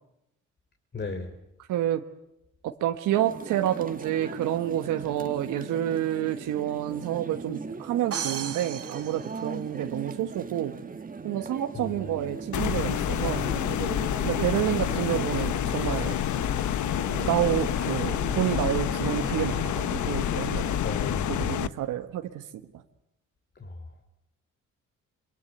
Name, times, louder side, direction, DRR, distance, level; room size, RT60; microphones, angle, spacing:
voice 1, 0.9-1.3 11.7-11.9 20.8-21.6 23.6-23.8, left 3 dB, 35° left, 5 dB, 3.5 m, -35 dB
voice 2, 1.7-2.0 2.8-10.8 11.2-13.4 14.2-16.1 17.2-20.7 21.3-22.4, right 12 dB, 85° right, 6 dB, 1.5 m, -29 dB
sound 1, 3.1-20.8, right 4 dB, 30° right, 1.8 m, -40 dB
sound 2, 8.1-10.1, right 8 dB, 50° right, 2.2 m, -35 dB
sound 3, 12.5-21.7, left 10 dB, 70° left, 1.1 m, -28 dB
26.0 x 23.5 x 8.1 m, 0.85 s
cardioid pair, 90°, 30 cm